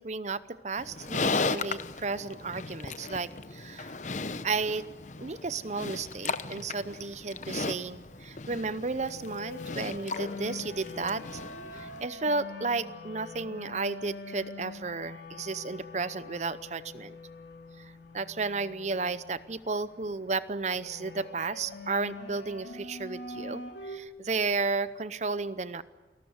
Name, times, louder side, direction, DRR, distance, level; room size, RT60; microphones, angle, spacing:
voice 1, 0.0-3.9 4.4-4.9 5.2-11.2 11.7-17.2 17.8-25.8, right 4 dB, 40° right, 15 dB, 0.7 m, -33 dB
Livestock farm animals working animals, 0.8-12.1, left 4 dB, 45° left, 0.8 m, -36 dB
sound 1, 4.4-24.0, left 3 dB, 80° left, 2.9 m, -45 dB
29.0 x 19.0 x 8.0 m, 1.2 s
head